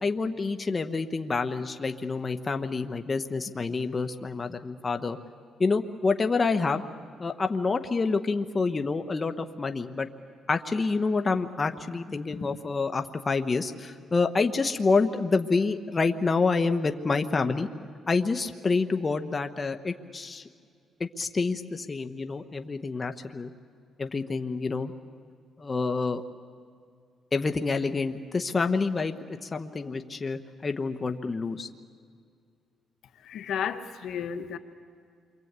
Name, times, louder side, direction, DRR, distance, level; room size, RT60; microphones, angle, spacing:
voice 1, 0.0-5.2 5.6-6.9 7.2-10.1 10.5-17.7 18.1-20.4 21.0-23.5 24.0-24.9 25.6-26.2 27.3-31.7, left 4 dB, 30° left, 7 dB, 1.2 m, -28 dB
voice 2, 33.2-34.6, left 8 dB, 75° left, 8 dB, 1.3 m, -32 dB
28.5 x 24.0 x 8.2 m, 2.2 s
cardioid pair, 90°, 0 cm